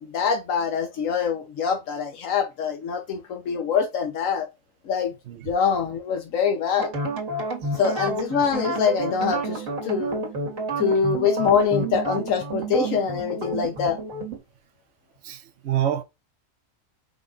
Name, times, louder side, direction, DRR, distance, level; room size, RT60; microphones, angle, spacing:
voice 1, 0.0-4.5 4.9-5.1 5.5-6.9 7.8-10.2 10.8-14.0, left 6 dB, 80° left, 1.2 m, -24 dB
sound 1, 6.8-14.4, right 3 dB, 80° right, 1.9 m, -30 dB
voice 2, 15.2-16.0, right 11 dB, 60° right, 1.0 m, -27 dB
5.1 x 2.4 x 3.8 m
omnidirectional pair, 1.4 m